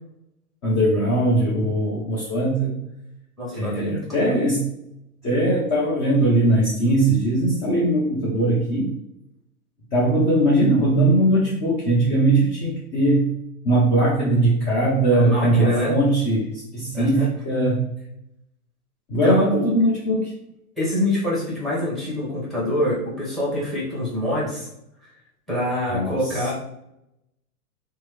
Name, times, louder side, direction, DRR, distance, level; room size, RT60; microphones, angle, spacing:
voice 1, 0.6-2.8 3.5-4.7 5.2-8.9 9.9-13.3 13.6-16.5 16.7-17.8 19.1-20.3 25.9-26.4, right 1 dB, 25° left, -6 dB, 0.7 m, -20 dB
voice 2, 3.4-4.0 15.1-15.9 16.9-17.3 19.2-19.7 20.8-24.7 25.5-26.5, left 1 dB, ahead, -6 dB, 1.0 m, -25 dB
3.0 x 2.1 x 3.2 m, 0.82 s
hypercardioid pair, 135°, 44 cm